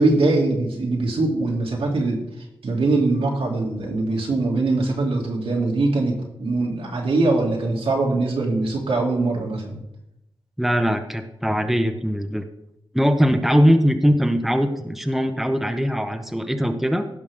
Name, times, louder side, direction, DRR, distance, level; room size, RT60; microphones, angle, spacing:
voice 1, 0.0-2.2 2.6-9.8, right 2 dB, 80° right, -1 dB, 2.3 m, -22 dB
voice 2, 10.6-12.4 12.9-17.1, equal, ahead, 6 dB, 0.9 m, -21 dB
16.0 x 5.6 x 3.6 m, 0.85 s
wide cardioid pair, 80°, 9 cm